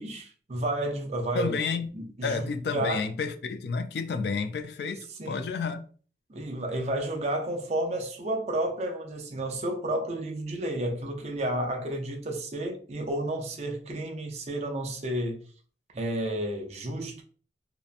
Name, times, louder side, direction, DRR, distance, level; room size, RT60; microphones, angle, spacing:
voice 1, 0.0-1.6 1.9-3.0 5.2-5.5 6.3-15.4 15.9-17.2, right 1 dB, 35° right, 0.5 m, -31 dB
voice 2, 1.3-1.9 2.2-5.8, left 5 dB, 65° left, 0.3 m, -30 dB
2.8 x 2.1 x 2.4 m
head